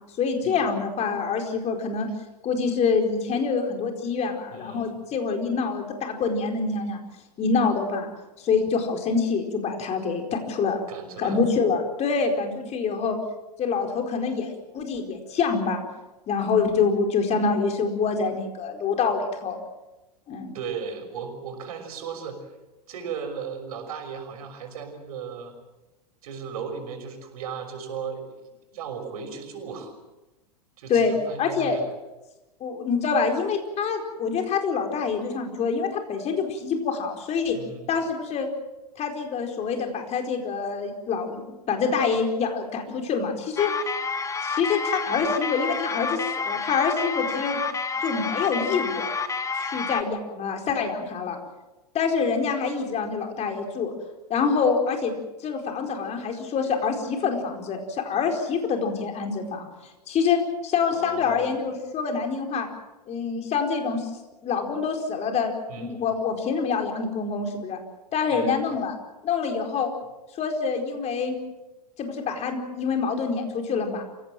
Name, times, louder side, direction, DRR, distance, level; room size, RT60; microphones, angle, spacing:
voice 1, 0.2-2.1 2.4-7.0 7.4-8.1 8.4-10.8 11.2-13.2 13.6-15.8 16.3-19.6 20.3-20.5 30.9-31.8 32.6-37.6 37.9-38.5 39.0-41.4 41.7-43.7 44.4-47.6 48.0-49.1 49.5-51.4 51.9-53.9 54.3-55.1 55.4-59.7 60.1-62.7 63.1-64.1 64.4-67.8 68.1-68.9 69.2-69.9 70.4-71.4 72.0-74.0, left 5 dB, 35° left, 4 dB, 4.6 m, -26 dB
voice 2, 4.5-5.0 10.9-11.4 20.5-22.4 22.9-25.5 26.2-28.4 28.7-30.0 30.8-31.8 37.5-37.9 60.9-61.7 65.7-66.0 68.3-68.6, right 6 dB, 65° right, 5 dB, 6.0 m, -36 dB
sound 1, 43.6-50.0, left 5 dB, 15° left, 1.6 m, -29 dB
28.0 x 17.0 x 7.7 m, 1.0 s
hypercardioid pair, 100°, 20 cm